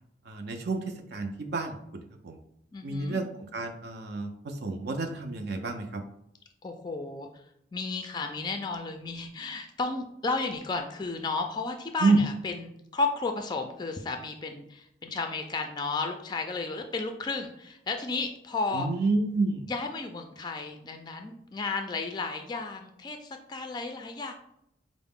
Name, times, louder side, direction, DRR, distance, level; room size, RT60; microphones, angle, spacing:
voice 1, 0.3-2.4 2.8-6.0 12.0-12.2 18.7-19.7, right 3 dB, 60° right, 5 dB, 0.4 m, -29 dB
voice 2, 2.7-3.2 6.6-7.3 7.7-18.9 19.7-24.3, left 3 dB, 25° left, 5 dB, 0.3 m, -33 dB
4.6 x 2.0 x 3.5 m, 0.76 s
head